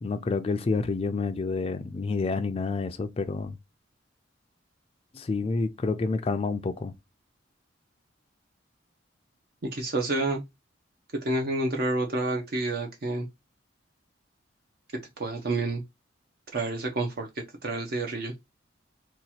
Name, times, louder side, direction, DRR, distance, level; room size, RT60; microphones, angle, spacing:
voice 1, 0.0-3.5 5.1-6.9, left 4 dB, 30° left, 0.3 m, -28 dB
voice 2, 9.6-10.4 11.2-13.3 15.2-15.8 16.5-17.3 17.6-18.3, right 2 dB, 55° right, 0.6 m, -29 dB
2.9 x 2.3 x 4.1 m
head